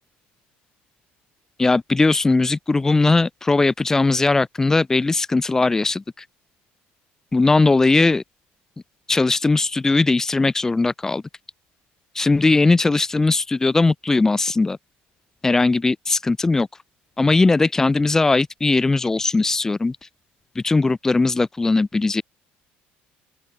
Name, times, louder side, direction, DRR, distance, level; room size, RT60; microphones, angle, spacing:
voice 1, 1.6-6.0 7.3-8.2 9.1-11.2 12.1-14.8 15.4-16.7 17.2-20.0 20.5-22.2, left 3 dB, 10° left, 2.6 m, -19 dB
open air
cardioid pair, 155°, 4 cm